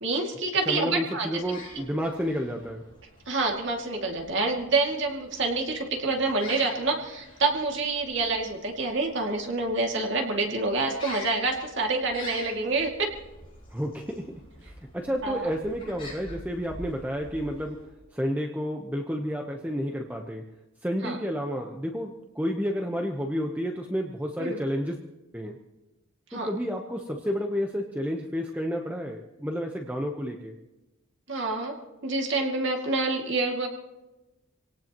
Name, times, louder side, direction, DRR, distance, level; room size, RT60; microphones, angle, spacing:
voice 1, 0.0-1.3 3.3-13.1 15.2-15.5 21.0-21.2 24.4-24.6 26.3-26.5 31.3-33.7, right 3 dB, 60° right, 1 dB, 2.4 m, -27 dB
voice 2, 0.7-2.9 13.7-17.8 18.1-20.4 20.8-25.0 25.3-25.6 26.3-30.5, equal, 10° right, 1 dB, 1.0 m, -31 dB
sound 1, 1.3-18.0, left 2 dB, 25° left, 6.4 m, -47 dB
25.5 x 18.5 x 3.0 m, 1.0 s
head